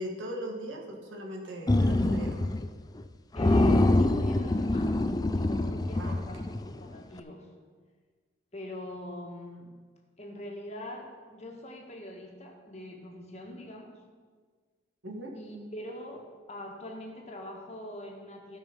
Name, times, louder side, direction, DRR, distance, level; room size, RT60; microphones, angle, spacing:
voice 1, 0.0-2.5 5.9-6.3 15.0-15.3, equal, 85° right, 0 dB, 1.8 m, -38 dB
sound 1, 1.7-2.7 3.0-3.1 3.4-6.8, left 2 dB, 20° left, 0.4 m, -25 dB
voice 2, 3.3-7.5 8.5-9.7 10.2-14.0 15.3-18.6, left 1 dB, 35° left, 1 dB, 1.6 m, -42 dB
16.0 x 5.4 x 5.2 m, 1.6 s
head